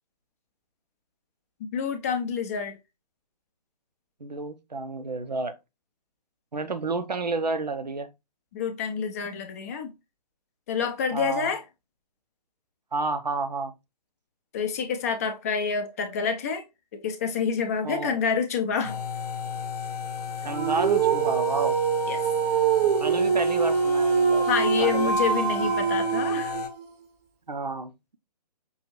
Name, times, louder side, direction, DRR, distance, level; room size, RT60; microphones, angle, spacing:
voice 1, 1.6-2.8 8.5-9.9 10.7-11.6 14.5-16.6 17.0-19.0 22.1-22.2 24.5-26.5, left 6 dB, 25° left, 0.4 m, -28 dB
voice 2, 4.2-5.6 6.5-8.1 11.1-11.5 12.9-13.7 17.8-18.2 20.4-21.8 23.0-24.5 24.8-25.1 27.5-27.9, right 3 dB, 85° right, 0.6 m, -30 dB
sound 1, 18.8-26.7, left 7 dB, 70° left, 0.8 m, -36 dB
Dog, 20.5-26.8, right 6 dB, 20° right, 0.7 m, -24 dB
5.3 x 2.5 x 3.0 m
figure-of-eight pair, 130°, 21 cm